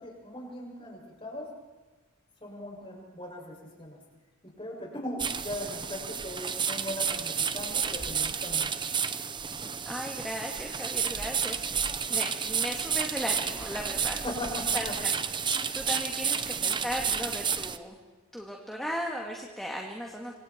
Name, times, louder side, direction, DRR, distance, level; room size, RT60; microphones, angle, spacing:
voice 1, 0.0-1.5 2.4-4.0 4.6-8.7 14.2-14.9, left 1 dB, 25° left, -1 dB, 7.0 m, -39 dB
sound 1, 5.2-17.8, right 7 dB, 20° right, 0.9 m, -31 dB
voice 2, 9.8-14.2 14.7-15.1 15.7-18.0 18.3-20.3, equal, ahead, -1 dB, 2.3 m, -36 dB
27.0 x 26.5 x 4.7 m, 1.3 s
head